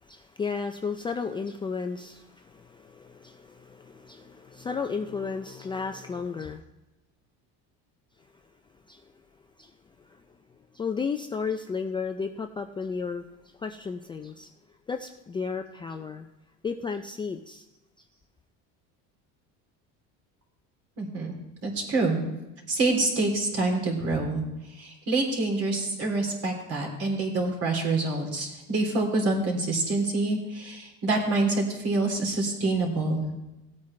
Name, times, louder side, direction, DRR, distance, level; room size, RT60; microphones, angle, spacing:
voice 1, 0.0-6.6 8.9-9.0 9.6-9.7 10.0-10.2 10.7-13.2 13.6-14.5 14.9-16.3 16.6-17.6, left 5 dB, 15° left, 5 dB, 0.3 m, -33 dB
voice 2, 21.0-21.3 21.6-22.2 22.7-24.4 24.7-33.2, right 2 dB, 45° right, 1 dB, 3.2 m, -26 dB
17.5 x 8.5 x 3.2 m, 0.99 s
cardioid pair, 140°, 33 cm